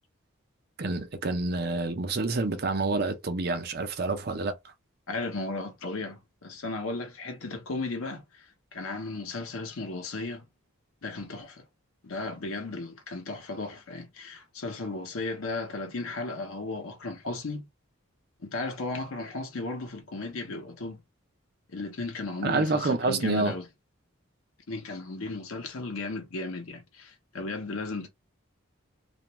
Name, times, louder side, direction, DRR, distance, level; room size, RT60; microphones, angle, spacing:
voice 1, 0.8-4.5 22.4-23.5, right 3 dB, 45° right, 0.5 m, -28 dB
voice 2, 5.1-10.4 11.0-11.6 12.0-17.7 18.4-21.0 21.7-23.7 24.7-28.1, left 3 dB, 85° left, 0.8 m, -35 dB
2.4 x 2.1 x 3.0 m
head